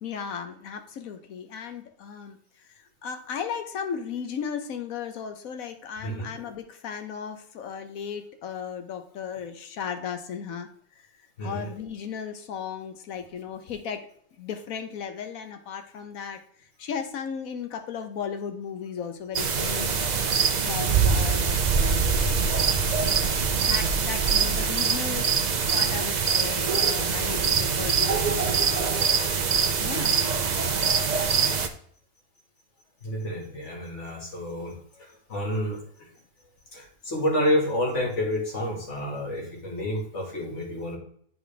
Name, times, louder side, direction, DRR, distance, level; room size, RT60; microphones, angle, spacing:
voice 1, 0.0-2.4 2.7-10.7 11.0-11.1 11.4-14.1 14.4-20.0 20.6-22.5 23.5-29.0 29.8-30.2, left 7 dB, 75° left, 7 dB, 1.3 m, -36 dB
voice 2, 6.0-6.3 11.4-11.7 33.0-35.8 36.7-41.0, left 1 dB, 55° left, 0 dB, 2.2 m, -29 dB
sound 1, 19.3-31.7, right 5 dB, 50° right, 0.5 m, -24 dB
10.0 x 4.2 x 3.4 m, 0.62 s
omnidirectional pair, 1.5 m